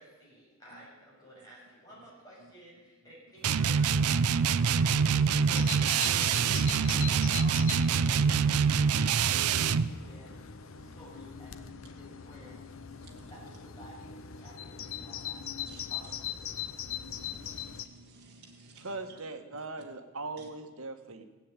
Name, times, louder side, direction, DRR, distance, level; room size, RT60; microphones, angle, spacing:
voice 1, 0.0-4.3 5.4-6.4 6.7-8.6 9.9-12.6 13.3-16.8, right 1 dB, 15° left, -6 dB, 7.0 m, -54 dB
sound 1, 3.4-9.9, right 6 dB, 90° right, 0.5 m, -25 dB
Bird vocalization bird call bird song, 5.5-17.9, left 8 dB, 70° left, 0.8 m, -41 dB
voice 2, 17.0-18.9, right 3 dB, 50° right, -1 dB, 1.8 m, -56 dB
voice 3, 18.7-21.2, right 3 dB, 70° right, 7 dB, 1.5 m, -40 dB
17.0 x 8.7 x 9.1 m, 1.3 s
head